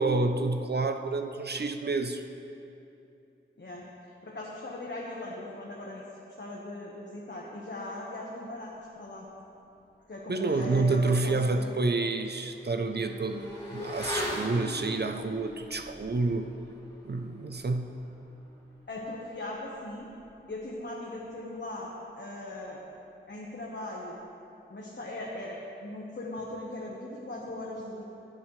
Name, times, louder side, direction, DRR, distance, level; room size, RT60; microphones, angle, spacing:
voice 1, 0.0-2.2 10.3-16.5 17.0-18.0, right 3 dB, 55° right, 6 dB, 0.6 m, -29 dB
voice 2, 3.6-6.0 6.4-9.3 10.1-11.8 18.9-20.1 20.5-22.8 23.3-24.2 24.7-28.0, left 1 dB, 60° left, -4 dB, 1.3 m, -39 dB
Motorcycle / Accelerating revving vroom, 12.0-21.4 21.7-21.8, left 1 dB, 20° left, 3.0 m, -42 dB
16.5 x 9.1 x 3.2 m, 2.8 s
wide cardioid pair, 60°, 21 cm